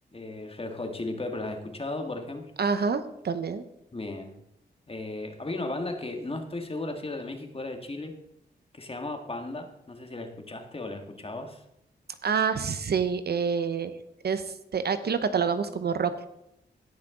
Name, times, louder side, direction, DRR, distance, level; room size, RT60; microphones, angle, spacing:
voice 1, 0.1-2.5 3.9-4.3 4.9-8.1 8.7-11.6, left 2 dB, 30° left, 5 dB, 1.7 m, -35 dB
voice 2, 2.6-3.6 12.2-13.9 14.2-16.3, right 6 dB, 65° right, 11 dB, 0.8 m, -27 dB
17.0 x 6.0 x 3.8 m, 0.83 s
cardioid pair, 55°, 18 cm